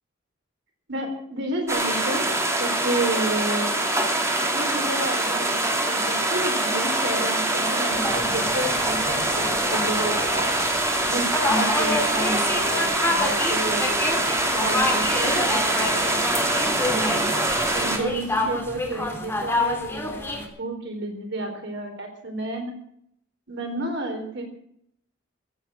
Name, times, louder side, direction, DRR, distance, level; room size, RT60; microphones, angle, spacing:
voice 1, 0.9-3.8 4.5-10.5 11.0-14.1 14.5-17.3 17.8-22.7 23.5-24.4, right 2 dB, 65° right, 3 dB, 3.9 m, -31 dB
sound 1, 1.7-18.0, right 1 dB, 15° right, 2.9 m, -24 dB
sound 2, 7.9-20.5, left 2 dB, 10° left, 3.0 m, -29 dB
15.5 x 9.0 x 8.7 m, 0.71 s
head